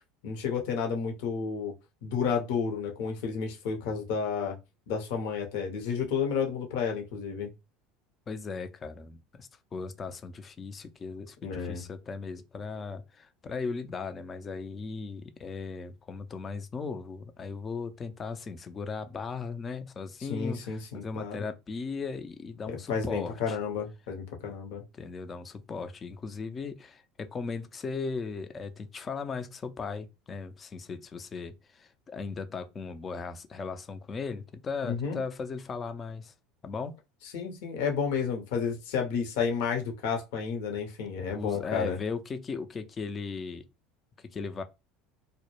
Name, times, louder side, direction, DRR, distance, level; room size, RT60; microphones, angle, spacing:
voice 1, 0.2-1.7 2.0-4.5 4.9-7.5 11.4-11.8 20.2-21.4 22.6-24.8 34.8-35.2 37.3-42.0, left 6 dB, 70° left, 0.8 m, -31 dB
voice 2, 8.3-23.6 24.9-36.3 36.6-36.9 41.3-43.6 44.2-44.6, left 4 dB, 30° left, 0.4 m, -37 dB
2.1 x 2.0 x 3.0 m
hypercardioid pair, 85°, 0 cm